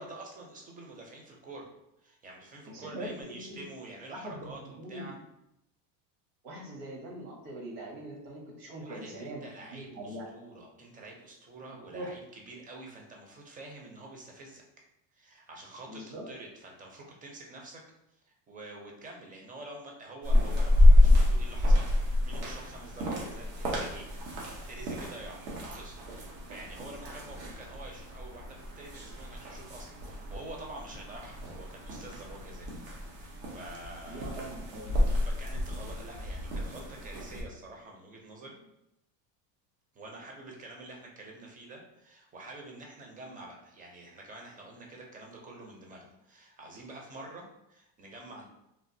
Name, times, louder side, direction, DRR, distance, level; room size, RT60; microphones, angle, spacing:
voice 1, 0.0-1.7 2.0-5.1 8.7-14.7 15.1-17.8 18.1-24.1 24.7-32.7 33.1-34.3 35.2-38.6 39.9-48.5, right 2 dB, 20° right, 0 dB, 0.6 m, -47 dB
voice 2, 2.7-3.6 4.1-5.2 6.4-9.4 9.7-10.3 11.9-12.1 15.9-16.2 34.1-35.0, right 1 dB, 60° right, 0 dB, 1.2 m, -42 dB
sound 1, 20.2-37.4, left 1 dB, 85° right, 1.0 m, -28 dB
3.3 x 2.4 x 2.7 m, 0.85 s
supercardioid pair, 120°, 47 cm